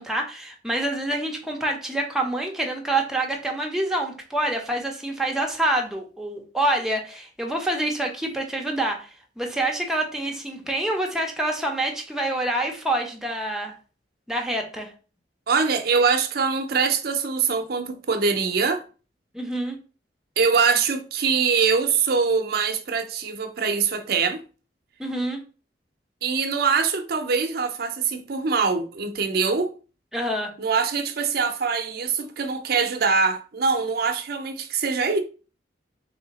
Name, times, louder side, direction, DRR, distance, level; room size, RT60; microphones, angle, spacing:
voice 1, 0.0-9.1 9.4-13.7 14.3-14.9 19.3-19.8 25.0-25.4 30.1-30.5, right 1 dB, 5° right, 0.7 m, -26 dB
voice 2, 15.5-18.8 20.4-24.4 26.2-29.7 30.6-35.2, right 5 dB, 60° right, 0.6 m, -23 dB
3.3 x 2.8 x 4.0 m
head